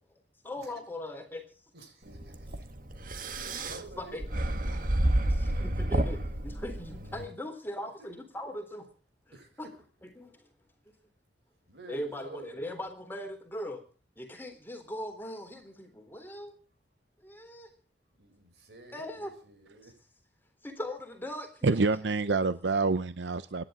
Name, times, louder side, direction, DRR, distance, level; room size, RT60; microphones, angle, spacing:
voice 1, 0.4-1.4 3.5-4.3 4.7-4.9 5.3-8.9 9.6-9.7 10.0-10.5 11.9-13.8 14.2-16.5 17.2-17.7 18.9-19.3 19.8-19.9 20.6-21.7, left 1 dB, 10° left, 5 dB, 3.8 m, -40 dB
voice 2, 1.7-2.7 2.9-4.2 9.3-9.6 11.6-12.6 18.2-19.9, right 2 dB, 70° right, 4 dB, 7.1 m, -50 dB
sound 1, 2.1-7.3, right 1 dB, 50° right, 1.7 m, -30 dB
voice 3, 21.6-23.6, right 3 dB, 90° right, 14 dB, 0.7 m, -27 dB
25.5 x 11.0 x 3.8 m, 0.38 s
head